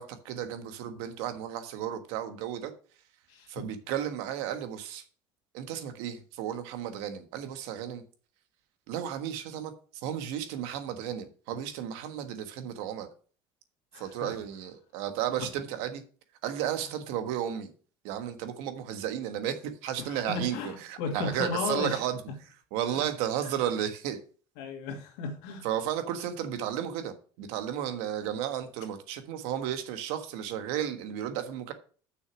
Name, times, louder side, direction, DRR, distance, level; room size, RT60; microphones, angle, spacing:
voice 1, 0.0-2.7 3.5-5.0 5.5-8.0 8.9-9.7 10.0-13.1 14.0-16.0 16.4-17.7 18.0-22.2 22.7-24.2 25.6-31.7, right 10 dB, 80° right, 1.4 m, -33 dB
voice 2, 13.9-14.3 20.0-22.0 24.6-25.7, left 5 dB, 90° left, 2.4 m, -35 dB
6.5 x 6.4 x 6.2 m
cardioid pair, 180°, 10 cm